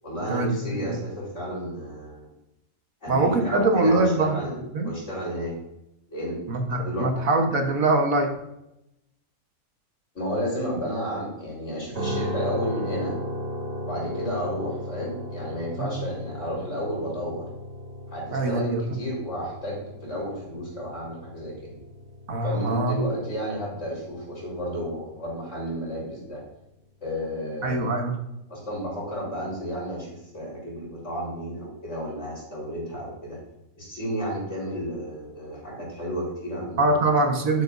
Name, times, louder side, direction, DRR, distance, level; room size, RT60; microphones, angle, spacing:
voice 1, 0.0-2.3 3.0-5.5 6.1-6.4 6.7-7.4 10.1-13.1 13.8-17.5 18.1-21.7 22.4-26.4 27.0-27.9 28.5-33.4 33.7-37.1 37.5-37.6, equal, 55° left, -5 dB, 4.8 m, -32 dB
voice 2, 3.1-4.4 4.7-4.9 6.5-8.4 15.8-16.1 18.3-18.8 22.3-23.1 27.6-28.1 36.8-37.6, right 2 dB, 70° right, 4 dB, 1.7 m, -23 dB
sound 1, 11.9-26.0, equal, 50° right, 2.7 m, -36 dB
11.5 x 10.0 x 2.7 m, 0.85 s
omnidirectional pair, 1.5 m